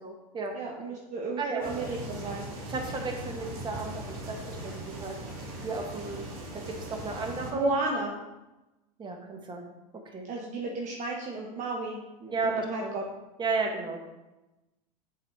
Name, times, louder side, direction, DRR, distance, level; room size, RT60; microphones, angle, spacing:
voice 1, 0.0-0.6 0.9-1.0 1.4-1.9 2.7-5.2 5.6-6.2 6.5-7.7 9.0-9.6 10.1-10.3 12.3-13.0 13.4-14.0, right 3 dB, 25° right, 2 dB, 1.3 m, -34 dB
voice 2, 0.5-2.5 7.5-8.1 10.3-13.0, right 2 dB, 40° right, -1 dB, 1.0 m, -33 dB
sound 1, 1.6-7.5, right 1 dB, 60° right, 2.4 m, -39 dB
7.4 x 4.1 x 4.7 m, 1.0 s
hypercardioid pair, 100°, 20 cm